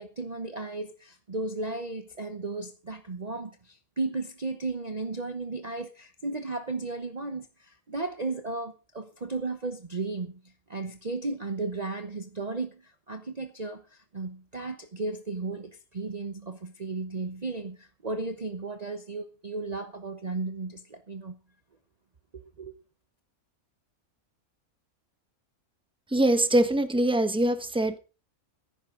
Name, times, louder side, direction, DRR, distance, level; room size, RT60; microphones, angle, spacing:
voice 1, 0.0-21.4 22.3-22.7, right 3 dB, 30° right, 1.0 m, -35 dB
voice 2, 26.1-28.0, right 1 dB, 5° right, 1.2 m, -23 dB
16.0 x 14.0 x 3.8 m
omnidirectional pair, 1.5 m